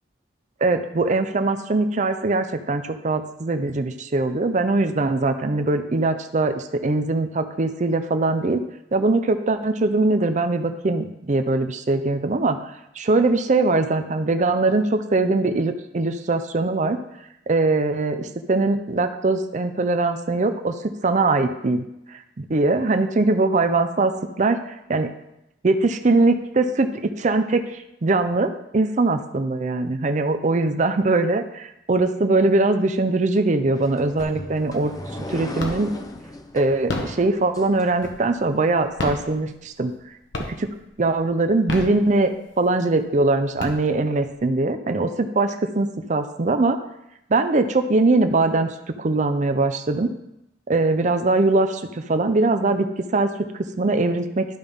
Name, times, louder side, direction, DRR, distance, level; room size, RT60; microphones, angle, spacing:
voice 1, 0.6-8.6 8.9-12.6 13.0-17.0 17.5-21.8 22.4-24.1 24.4-24.6 24.9-25.1 25.6-34.9 35.3-35.9 36.5-39.9 40.5-40.7 41.0-46.8 47.3-50.1 50.7-52.9 53.1-53.3 53.8-54.5, right 2 dB, 40° right, 8 dB, 0.5 m, -21 dB
sound 1, 33.7-38.4, left 1 dB, 20° left, 0.5 m, -37 dB
sound 2, 34.2-34.7 35.0-36.1 36.7-38.5 38.9-40.0 40.3-40.9 41.5-42.5 43.0-43.1 43.4-44.3, left 2 dB, 85° left, 1.2 m, -31 dB
12.0 x 5.3 x 3.5 m, 0.84 s
head